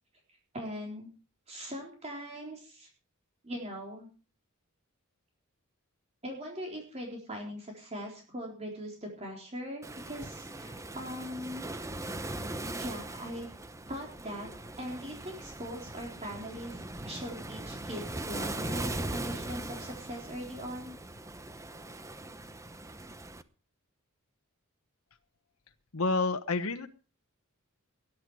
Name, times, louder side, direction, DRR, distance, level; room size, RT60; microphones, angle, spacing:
voice 1, 0.5-1.1 1.5-2.9 3.4-4.1 6.2-11.7 12.7-13.5 13.9-14.5 14.8-20.9, equal, 30° right, 0 dB, 4.0 m, -41 dB
Waves surf, 9.8-23.4, right 2 dB, 15° right, 0.8 m, -40 dB
voice 2, 25.9-26.9, left 3 dB, 75° left, 7 dB, 1.2 m, -29 dB
19.5 x 11.0 x 4.8 m, 0.36 s
head